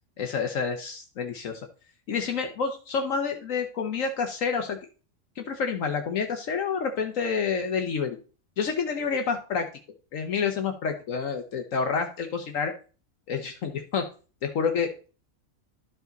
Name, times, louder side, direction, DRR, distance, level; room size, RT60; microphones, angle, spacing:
voice 1, 0.2-1.7 2.1-4.8 5.4-8.2 8.6-9.7 10.1-12.7 13.3-14.0 14.4-15.1, left 6 dB, 70° left, 5 dB, 1.3 m, -28 dB
13.0 x 4.9 x 3.9 m, 0.37 s
omnidirectional pair, 1.4 m